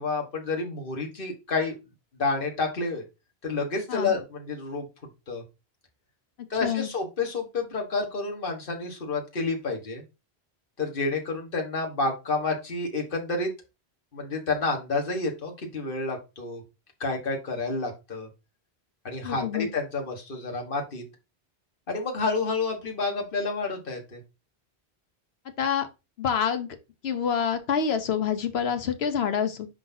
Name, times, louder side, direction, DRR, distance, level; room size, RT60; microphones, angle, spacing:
voice 1, 0.0-1.7 2.1-3.0 3.4-4.9 5.3-5.4 6.5-10.0 10.8-13.5 14.1-16.6 17.0-18.3 19.0-21.0 21.9-24.2, left 3 dB, 55° left, 1.7 m, -29 dB
voice 2, 19.2-19.7 25.6-25.9 26.2-26.8 27.0-29.7, left 7 dB, 75° left, 1.1 m, -27 dB
9.9 x 4.0 x 2.8 m
omnidirectional pair, 1.1 m